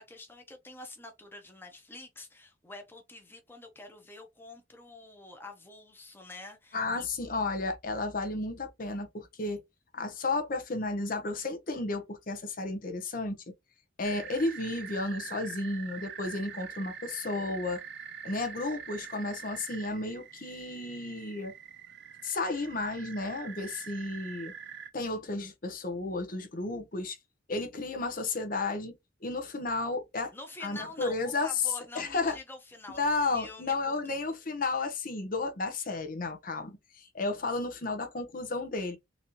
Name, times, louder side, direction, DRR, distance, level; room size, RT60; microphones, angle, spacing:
voice 1, 0.0-7.1 30.3-33.0 33.3-34.2, left 2 dB, 10° left, 1.0 m, -47 dB
voice 2, 6.7-9.6 9.9-13.4 14.0-17.8 18.2-21.5 22.2-24.5 24.9-27.2 27.5-30.3 30.6-31.6 31.9-32.4 33.0-39.0, left 3 dB, 45° left, 0.8 m, -33 dB
sound 1, 14.0-24.9, right 7 dB, 60° right, 0.6 m, -44 dB
4.1 x 2.8 x 3.0 m
head